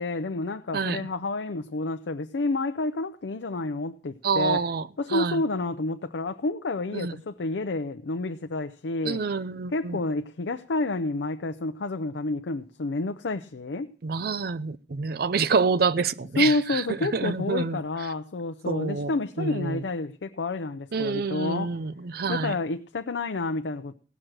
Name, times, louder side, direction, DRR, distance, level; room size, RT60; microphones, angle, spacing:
voice 1, 0.0-4.6 5.0-9.2 9.7-13.9 16.4-21.7 22.3-23.9, left 2 dB, 80° left, 0.6 m, -29 dB
voice 2, 0.7-1.1 4.2-5.4 6.9-7.1 9.0-10.0 14.0-17.8 18.7-19.1 19.4-19.9 20.9-22.5, right 5 dB, 55° right, 0.5 m, -27 dB
16.5 x 6.1 x 6.4 m
head